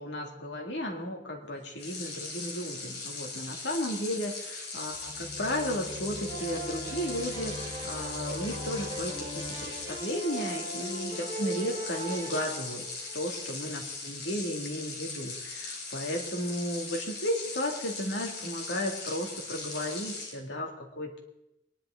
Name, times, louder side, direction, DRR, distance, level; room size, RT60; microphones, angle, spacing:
voice 1, 0.0-12.9 13.1-21.2, equal, 85° left, 1 dB, 2.3 m, -34 dB
sound 1, 1.7-20.4, left 3 dB, 65° left, 3.6 m, -39 dB
sound 2, 4.9-10.0, left 1 dB, 5° right, 3.2 m, -43 dB
sound 3, 6.3-13.3, right 2 dB, 25° right, 4.5 m, -40 dB
19.5 x 11.0 x 3.8 m, 0.88 s
head